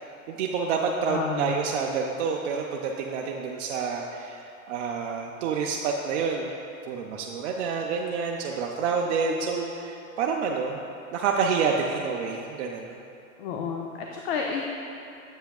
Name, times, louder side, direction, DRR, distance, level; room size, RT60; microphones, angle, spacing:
voice 1, 0.3-6.5 6.9-10.8 11.1-13.0, right 5 dB, 55° right, 0 dB, 0.5 m, -28 dB
voice 2, 1.1-1.5 13.4-14.6, left 5 dB, 45° left, 1 dB, 0.5 m, -30 dB
7.9 x 5.6 x 2.3 m, 2.7 s
hypercardioid pair, 115°, 42 cm